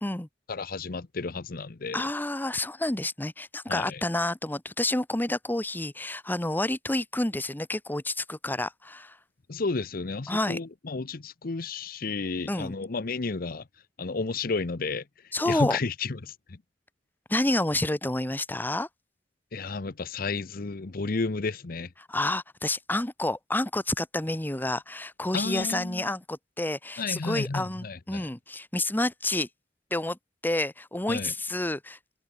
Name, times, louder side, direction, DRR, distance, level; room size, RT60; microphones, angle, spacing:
voice 1, 0.5-2.0 3.7-4.0 9.5-13.6 14.0-15.0 15.5-16.6 19.5-21.9 25.3-26.0 27.0-28.3 31.1-31.3, left 4 dB, 55° left, 0.8 m, -32 dB
voice 2, 1.9-9.2 10.3-10.6 12.5-12.7 15.3-15.8 17.3-18.9 22.1-29.5 29.9-30.2 30.4-32.0, left 1 dB, 10° left, 0.9 m, -29 dB
head